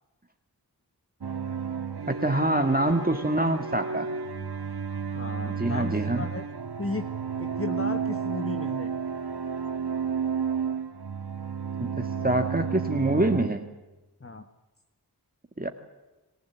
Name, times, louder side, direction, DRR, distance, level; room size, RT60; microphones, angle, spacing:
sound 1, 1.2-13.5, right 6 dB, 85° right, 1.6 m, -32 dB
voice 1, 2.1-4.1 5.6-6.3 11.8-13.7 15.6-15.7, right 1 dB, 25° right, 6 dB, 1.8 m, -25 dB
voice 2, 5.1-6.4 6.8-7.1 7.4-8.9 14.2-14.4, left 3 dB, 35° left, 7 dB, 1.5 m, -35 dB
27.5 x 18.0 x 8.4 m, 1.1 s
wide cardioid pair, 45°, 39 cm